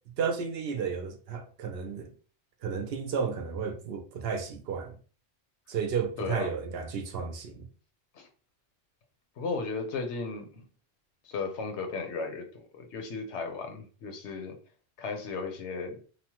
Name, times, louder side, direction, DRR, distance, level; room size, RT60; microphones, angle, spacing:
voice 1, 0.2-2.1 2.6-5.0 5.7-7.7, right 6 dB, 65° right, 0.7 m, -32 dB
voice 2, 6.2-6.5 8.1-8.3 9.4-10.6 11.2-14.6 15.0-16.0, left 4 dB, 85° left, 1.0 m, -35 dB
3.0 x 2.1 x 2.8 m
omnidirectional pair, 1.1 m